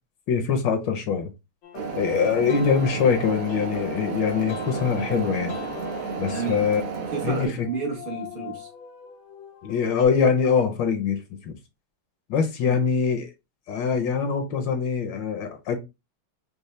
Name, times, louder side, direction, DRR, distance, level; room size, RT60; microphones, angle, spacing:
voice 1, 0.3-1.3 2.0-5.6 6.2-6.8 7.2-7.7 9.6-11.6 12.3-13.3 13.7-15.8, left 6 dB, 70° left, 1.3 m, -23 dB
sound 1, 1.6-10.1, left 7 dB, 85° left, 1.5 m, -41 dB
sound 2, 1.7-7.5, right 5 dB, 70° right, 1.6 m, -32 dB
voice 2, 6.3-6.6 7.1-8.7 12.6-12.8, right 5 dB, 50° right, 0.6 m, -31 dB
5.3 x 2.1 x 3.1 m
omnidirectional pair, 2.3 m